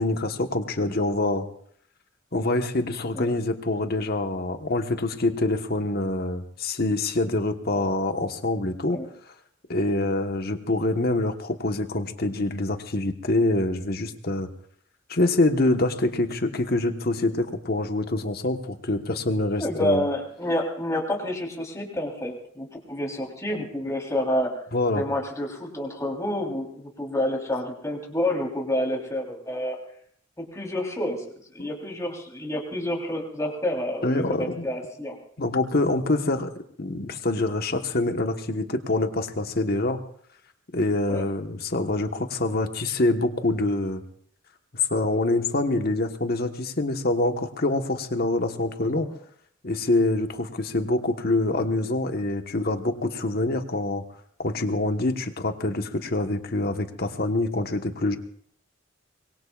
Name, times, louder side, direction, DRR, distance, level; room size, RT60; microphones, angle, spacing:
voice 1, 0.0-1.4 2.3-9.0 9.7-14.5 15.1-20.0 24.7-25.0 31.6-31.7 34.0-34.7 35.4-36.5 36.8-40.0 40.7-44.0 44.9-49.1 49.6-54.0 54.4-58.2, left 2 dB, 50° left, 6 dB, 1.3 m, -25 dB
voice 2, 19.6-24.5 25.0-29.8 30.4-31.2 31.5-35.1 41.1-41.3 48.8-48.9, left 1 dB, 15° left, -1 dB, 3.8 m, -29 dB
25.0 x 22.5 x 2.5 m, 0.62 s
head